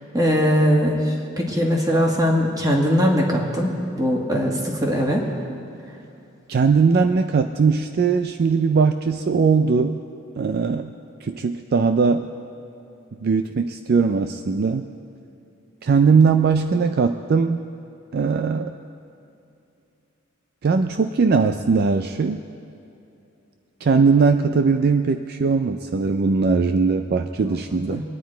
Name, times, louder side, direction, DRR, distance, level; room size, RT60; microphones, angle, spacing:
voice 1, 0.1-5.2 27.9-28.0, equal, 20° right, -1 dB, 1.9 m, -20 dB
voice 2, 6.5-10.0 10.4-10.9 11.2-12.3 13.2-14.9 15.8-17.6 18.1-18.7 20.6-22.4 23.8-28.0, right 5 dB, 50° right, 7 dB, 0.4 m, -20 dB
23.0 x 9.5 x 4.5 m, 2.6 s
head